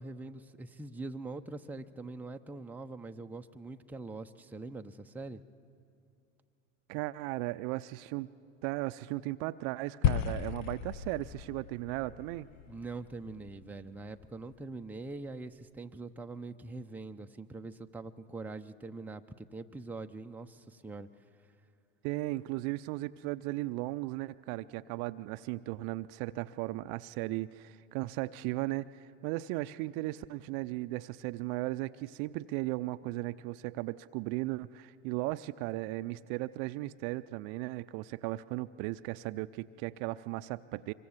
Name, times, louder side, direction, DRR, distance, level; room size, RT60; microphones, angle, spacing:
voice 1, 0.0-5.4 12.7-21.1, right 3 dB, 5° right, 5 dB, 0.7 m, -43 dB
voice 2, 6.9-8.3 8.6-12.5 22.0-40.9, right 18 dB, 50° right, 13 dB, 0.6 m, -36 dB
sound 1, 10.0-14.4, left 10 dB, 45° left, 0.9 m, -35 dB
25.0 x 23.0 x 7.3 m, 2.4 s
hypercardioid pair, 90°, 40 cm